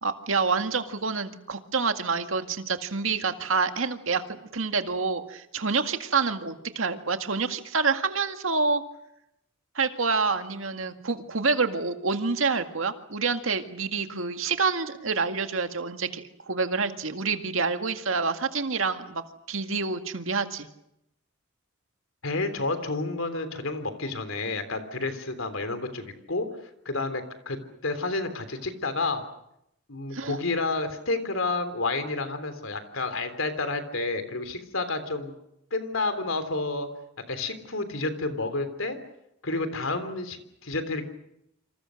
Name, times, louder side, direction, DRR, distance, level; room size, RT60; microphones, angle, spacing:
voice 1, 0.0-8.8 9.8-19.2 19.5-20.7 30.1-30.4, right 4 dB, 75° right, 7 dB, 2.0 m, -27 dB
voice 2, 22.2-26.5 26.9-29.2 29.9-35.3 35.7-36.9 37.3-39.0 39.4-41.1, left 3 dB, 75° left, 10 dB, 3.5 m, -30 dB
28.5 x 26.5 x 6.5 m, 0.81 s
head